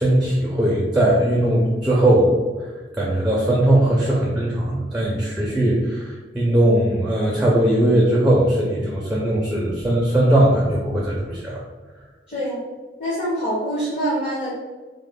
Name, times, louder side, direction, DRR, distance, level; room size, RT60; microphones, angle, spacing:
voice 1, 0.0-2.3 3.0-11.6, right 1 dB, 5° right, -4 dB, 0.4 m, -19 dB
voice 2, 12.3-12.6 13.0-14.5, right 1 dB, 35° left, -7 dB, 0.8 m, -25 dB
3.0 x 2.1 x 3.5 m, 1.3 s
head